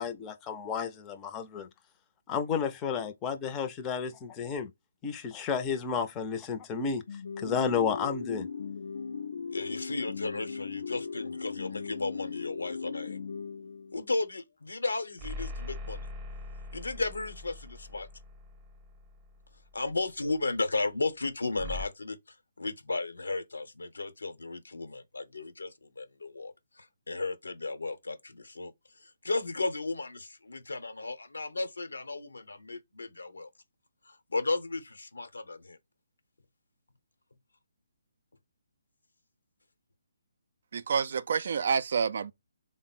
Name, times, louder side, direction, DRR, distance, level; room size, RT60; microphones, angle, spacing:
voice 1, 0.0-1.7 2.3-4.7 5.0-7.0 7.4-8.5, left 6 dB, 15° left, 0.5 m, -32 dB
sound 1, 7.1-14.2, left 5 dB, 70° left, 0.3 m, -38 dB
voice 2, 9.5-13.2 13.9-16.0 16.7-18.1 19.7-22.2 22.6-28.7 29.0-33.5 34.1-35.8, left 3 dB, 90° left, 0.8 m, -34 dB
sound 2, 15.2-19.8 21.6-21.9, left 2 dB, 20° right, 0.8 m, -42 dB
voice 3, 40.7-42.3, right 6 dB, 60° right, 0.4 m, -28 dB
3.5 x 2.0 x 4.0 m
hypercardioid pair, 150°, 0 cm